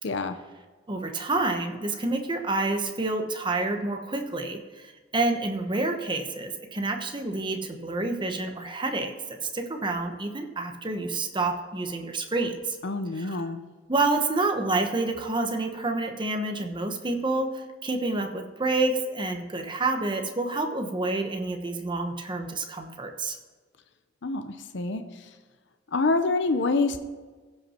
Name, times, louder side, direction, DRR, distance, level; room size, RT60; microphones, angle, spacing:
voice 1, 0.0-0.4 12.8-13.6 24.2-25.0 25.9-27.0, left 3 dB, 65° left, 8 dB, 0.6 m, -26 dB
voice 2, 0.9-9.1 9.4-12.8 13.2-13.4 13.9-23.4, right 2 dB, 25° right, 5 dB, 1.0 m, -28 dB
15.5 x 5.7 x 4.3 m, 1.4 s
head